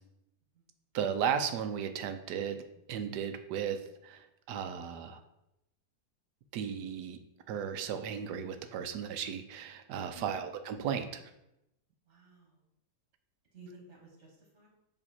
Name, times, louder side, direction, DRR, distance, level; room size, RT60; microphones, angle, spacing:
voice 1, 0.9-2.6 2.9-5.2 6.5-7.2 7.5-11.2, right 8 dB, 80° right, 9 dB, 1.2 m, -35 dB
voice 2, 10.1-10.5 12.0-12.6 13.5-14.7, right 3 dB, 45° right, 0 dB, 1.7 m, -54 dB
7.1 x 3.2 x 4.2 m, 0.87 s
omnidirectional pair, 1.8 m